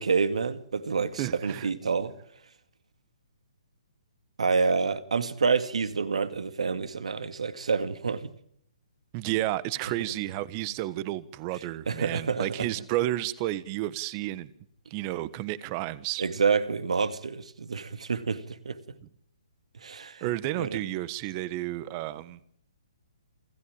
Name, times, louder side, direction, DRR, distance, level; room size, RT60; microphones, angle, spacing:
voice 1, 0.0-2.1 4.4-8.3 11.9-12.7 16.2-18.8 19.8-20.3 20.6-20.8, right 5 dB, 80° right, 2.1 m, -28 dB
voice 2, 1.2-1.7 9.1-14.5 14.9-16.2 20.2-22.4, right 15 dB, 30° right, 1.3 m, -31 dB
27.5 x 14.0 x 8.9 m
hypercardioid pair, 145°, 3 cm